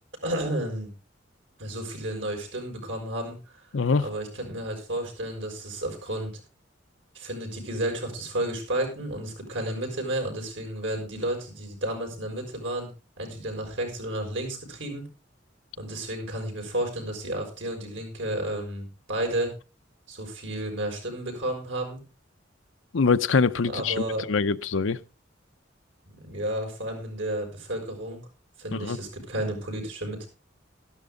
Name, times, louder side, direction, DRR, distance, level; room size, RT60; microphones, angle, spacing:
voice 1, 0.2-0.9 1.6-3.6 4.0-6.3 7.1-12.9 13.2-15.1 15.8-19.5 20.1-22.0 23.6-24.3 26.1-28.2 28.6-30.3, right 1 dB, 75° right, 6.3 m, -32 dB
voice 2, 3.7-4.1 22.9-25.0 28.7-29.0, left 4 dB, 90° left, 0.7 m, -24 dB
13.5 x 12.0 x 3.8 m
head